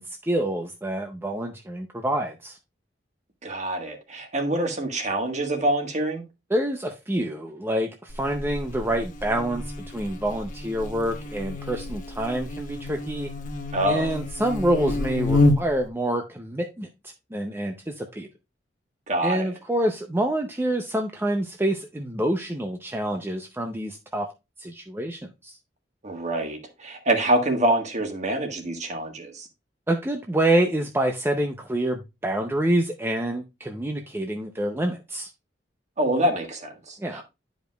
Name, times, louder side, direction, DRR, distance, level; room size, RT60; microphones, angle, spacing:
voice 1, 0.0-2.6 6.5-13.3 13.9-18.3 19.2-24.3 24.6-25.6 29.9-35.3 37.0-37.2, right 1 dB, 15° right, 0.6 m, -27 dB
voice 2, 3.4-6.2 13.7-14.1 19.1-19.5 26.0-29.5 36.0-37.2, right 1 dB, 40° right, 1.5 m, -26 dB
Buzz, 8.1-15.9, left 2 dB, 45° left, 0.9 m, -28 dB
11.0 x 5.1 x 2.3 m
head